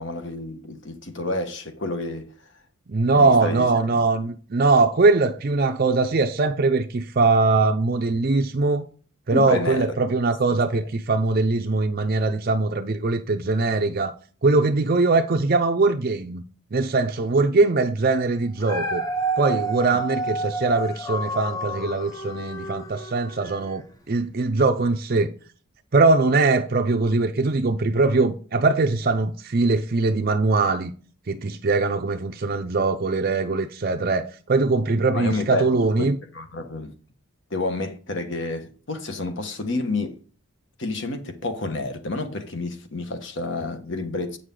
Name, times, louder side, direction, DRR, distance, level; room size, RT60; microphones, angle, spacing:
voice 1, 0.0-2.3 3.1-3.7 9.3-9.9 10.5-10.6 19.9-20.0 35.1-35.7 36.0-36.1 36.3-36.9 37.5-40.2 40.8-44.4, left 2 dB, 55° left, 1.2 m, -29 dB
voice 2, 2.9-8.9 9.3-14.1 14.4-16.4 16.7-19.0 19.4-25.3 25.9-30.9 31.3-36.2, right 3 dB, 40° right, 0.5 m, -21 dB
Dog, 18.4-23.8 24.3-24.4, right 2 dB, 15° left, 0.7 m, -30 dB
8.5 x 6.5 x 3.8 m
head